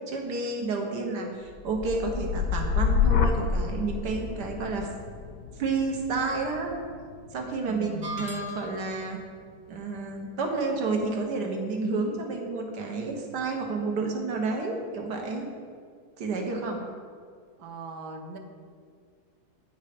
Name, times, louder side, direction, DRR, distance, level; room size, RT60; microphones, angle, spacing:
voice 1, 0.1-4.9 5.6-6.8 7.3-9.2 9.7-15.5 16.2-16.8, right 3 dB, 90° right, 2 dB, 1.6 m, -30 dB
sound 1, 1.5-9.5 10.0-10.5, left 6 dB, 65° left, 1.0 m, -30 dB
voice 2, 7.7-8.4 17.6-18.4, right 3 dB, 70° right, 4 dB, 1.3 m, -39 dB
sound 2, 8.0-9.0, left 1 dB, 55° right, 1.1 m, -37 dB
9.4 x 5.5 x 5.0 m, 2.1 s
omnidirectional pair, 1.7 m